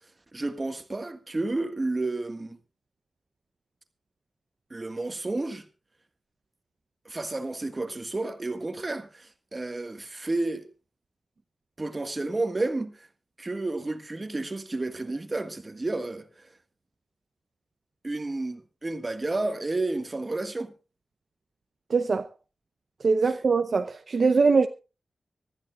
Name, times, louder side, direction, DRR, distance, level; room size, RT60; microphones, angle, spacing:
voice 1, 0.3-2.6 4.7-5.6 7.0-10.6 11.8-13.1 13.4-16.5 18.0-20.7, right 2 dB, 25° right, 1.6 m, -31 dB
voice 2, 21.9-22.3 23.0-24.7, right 4 dB, 50° right, 0.7 m, -22 dB
24.5 x 13.5 x 2.4 m
wide cardioid pair, 180°, 0 cm